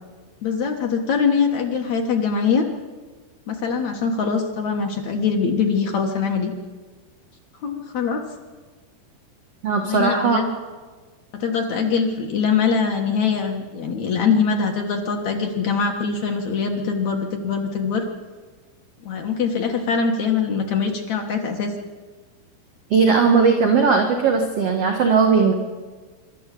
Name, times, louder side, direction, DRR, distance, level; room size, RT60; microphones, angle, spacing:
voice 1, 0.4-2.6 3.5-6.5 7.6-8.2 9.9-10.5 11.3-18.0 19.0-21.7, left 5 dB, 60° left, 2 dB, 2.1 m, -23 dB
voice 2, 9.6-10.4 22.9-25.5, right 5 dB, 55° right, 3 dB, 1.7 m, -18 dB
25.0 x 13.0 x 8.4 m, 1.4 s
omnidirectional pair, 5.0 m